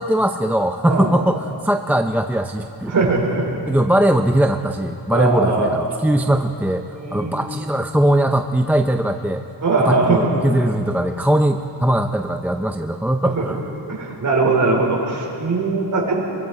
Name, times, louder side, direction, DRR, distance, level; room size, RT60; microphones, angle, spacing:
voice 1, 0.0-2.9 3.7-9.4 9.8-13.6, right 1 dB, 5° right, 6 dB, 0.6 m, -20 dB
voice 2, 2.9-3.6 5.1-5.7 6.9-7.4 9.6-10.3 13.3-13.4 13.9-16.2, right 3 dB, 45° right, 0 dB, 4.4 m, -20 dB
24.5 x 23.5 x 4.8 m, 2.7 s
cardioid pair, 120°, 44 cm